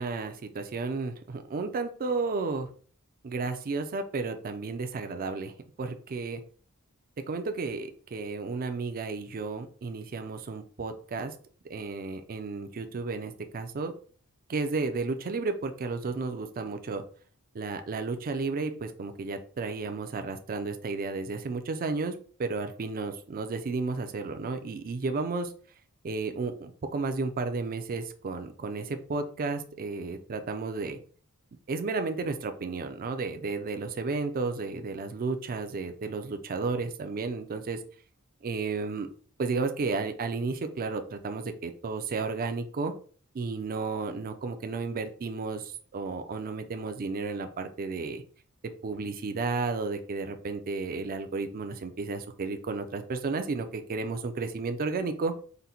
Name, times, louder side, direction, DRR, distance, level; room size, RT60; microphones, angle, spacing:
voice 1, 0.0-2.7 3.2-5.5 5.8-6.4 7.3-11.3 11.7-13.9 14.5-17.0 17.5-25.5 26.0-31.0 31.7-37.8 38.4-39.1 39.4-42.9 43.3-48.2 48.8-55.3, right 4 dB, 40° right, 7 dB, 0.4 m, -33 dB
3.9 x 2.1 x 4.2 m, 0.42 s
head